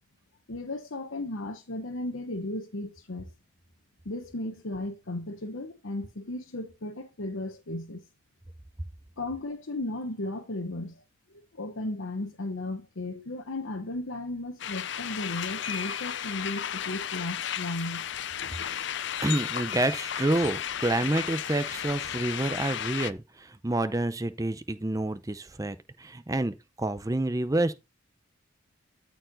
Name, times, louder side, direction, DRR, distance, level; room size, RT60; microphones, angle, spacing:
voice 1, 0.5-3.3 4.0-8.0 9.2-11.0 11.3-18.0, left 2 dB, 80° left, 1.1 m, -35 dB
sound 1, 14.6-23.1, left 9 dB, 60° left, 0.5 m, -34 dB
voice 2, 19.2-27.7, right 1 dB, 15° right, 0.6 m, -28 dB
13.0 x 4.6 x 3.9 m
head